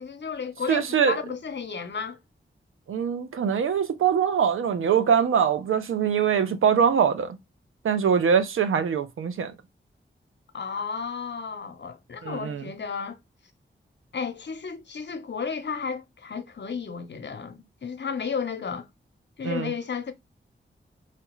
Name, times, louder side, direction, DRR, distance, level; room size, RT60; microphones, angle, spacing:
voice 1, 0.0-2.2 10.5-13.2 14.1-18.9 19.4-20.1, left 6 dB, 60° left, 0.8 m, -33 dB
voice 2, 0.7-1.2 2.9-7.4 7.8-9.5 12.2-12.6 19.4-19.7, right 7 dB, 85° right, 0.6 m, -23 dB
4.3 x 2.4 x 3.0 m
cardioid pair, 50°, 21 cm